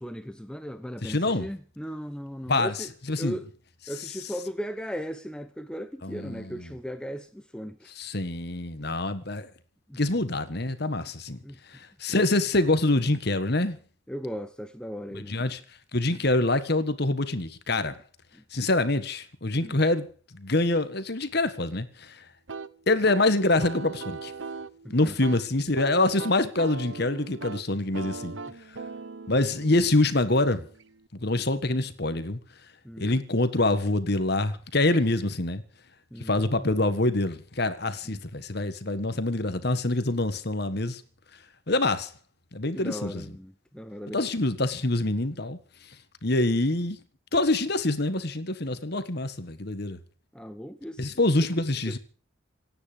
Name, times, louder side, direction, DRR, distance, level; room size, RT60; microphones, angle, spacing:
voice 1, 0.0-2.9 3.2-3.5 3.9-7.9 9.9-10.0 11.4-11.6 14.1-15.3 16.1-16.2 18.4-18.5 19.6-19.8 24.8-25.1 32.8-33.1 36.1-36.3 38.1-38.2 42.7-44.2 50.3-51.2 51.9-52.0, equal, 5° left, 0.8 m, -37 dB
voice 2, 1.0-1.5 2.5-3.4 4.0-4.1 6.0-6.7 7.9-9.5 10.0-11.4 11.7-13.8 15.1-15.6 15.9-18.0 18.5-20.1 20.3-22.2 22.9-24.3 24.9-28.4 29.3-30.7 31.1-32.4 33.0-35.6 36.2-41.0 41.7-42.1 42.5-43.3 44.1-45.6 46.2-47.0 47.3-50.0 51.0-52.0, left 2 dB, 50° left, 1.6 m, -25 dB
sound 1, 22.5-31.1, right 4 dB, 70° right, 1.0 m, -40 dB
27.5 x 9.7 x 5.2 m
head